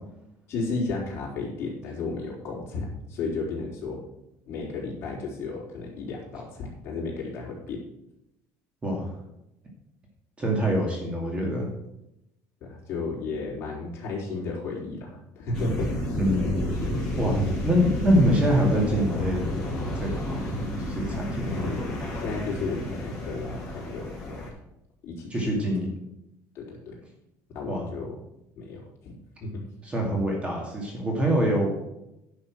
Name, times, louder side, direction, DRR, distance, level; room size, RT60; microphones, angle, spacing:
voice 1, 0.5-4.0 4.5-7.8 12.6-16.2 21.5-24.5 25.0-25.6 26.5-27.0 27.5-28.2 28.6-29.1 29.4-29.5, left 3 dB, 40° left, -4 dB, 4.4 m, -33 dB
voice 2, 8.8-9.1 10.4-11.7 16.2-16.5 17.2-19.4 19.9-20.4 20.8-21.9 25.3-25.9 27.7-27.9 29.8-31.8, equal, 20° right, 0 dB, 2.4 m, -25 dB
sound 1, 15.5-24.5, left 1 dB, 10° left, 4.7 m, -31 dB
10.5 x 6.5 x 6.4 m, 0.86 s
cardioid pair, 155°, 6 cm